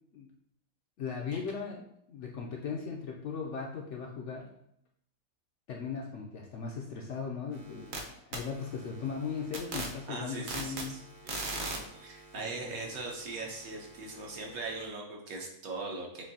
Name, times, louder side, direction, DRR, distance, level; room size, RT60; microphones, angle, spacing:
voice 1, 1.0-4.5 5.7-11.0 12.3-12.9, left 5 dB, 70° left, 0 dB, 0.7 m, -38 dB
sound 1, 7.5-8.0 8.3-14.9, right 2 dB, 50° right, 0.9 m, -42 dB
voice 2, 10.1-16.2, right 3 dB, 70° right, 0 dB, 1.3 m, -40 dB
7.1 x 2.6 x 2.7 m, 0.75 s
omnidirectional pair, 1.6 m